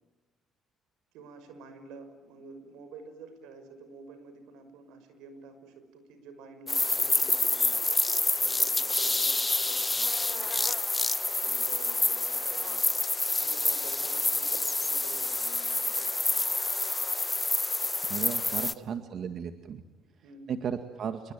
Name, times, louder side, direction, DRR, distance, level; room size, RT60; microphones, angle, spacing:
voice 1, 1.1-7.7 8.4-10.7 11.4-12.9 13.4-16.3 18.4-19.1 19.9-20.7, right 4 dB, 85° right, 9 dB, 5.8 m, -49 dB
sound 1, 6.7-18.7, left 2 dB, 15° left, 1.2 m, -28 dB
voice 2, 18.1-19.8 20.5-21.3, right 7 dB, 55° right, 8 dB, 2.0 m, -35 dB
28.0 x 23.0 x 9.0 m, 1.2 s
cardioid pair, 90°, 0 cm